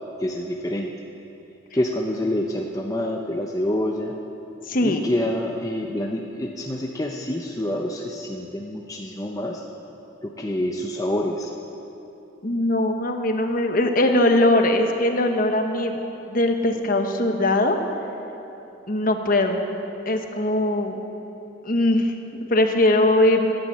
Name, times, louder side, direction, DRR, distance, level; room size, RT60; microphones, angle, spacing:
voice 1, 0.2-0.9 1.7-4.1 4.8-9.6 10.2-11.5, left 1 dB, 15° left, 0 dB, 0.6 m, -27 dB
voice 2, 4.7-5.0 12.4-15.9 16.3-17.8 18.9-19.6 20.1-21.0 21.6-23.5, left 1 dB, 45° left, 5 dB, 1.1 m, -20 dB
13.5 x 10.5 x 8.5 m, 3.0 s
head